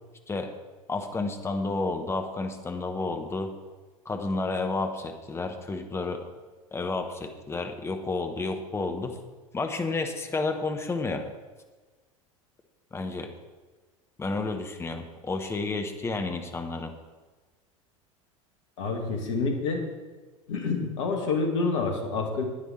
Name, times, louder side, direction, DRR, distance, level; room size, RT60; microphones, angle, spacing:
voice 1, 0.9-3.5 4.0-6.2 6.7-9.2 9.5-11.2 12.9-13.3 14.2-16.9, left 3 dB, 15° left, 6 dB, 1.1 m, -31 dB
voice 2, 18.8-19.8 20.5-22.4, left 4 dB, 60° left, 4 dB, 1.8 m, -28 dB
10.0 x 9.4 x 4.4 m, 1.3 s
figure-of-eight pair, 75°, 18 cm